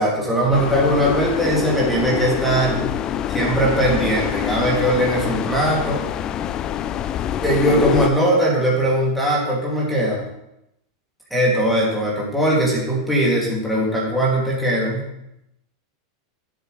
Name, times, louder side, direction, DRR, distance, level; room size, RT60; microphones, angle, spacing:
voice 1, 0.0-2.9 3.3-6.0 7.4-10.2 11.3-15.0, right 1 dB, ahead, -6 dB, 2.8 m, -20 dB
sound 1, 0.5-8.1, left 10 dB, 30° left, 0.4 m, -25 dB
12.0 x 7.9 x 3.3 m, 0.82 s
supercardioid pair, 140°, 2 cm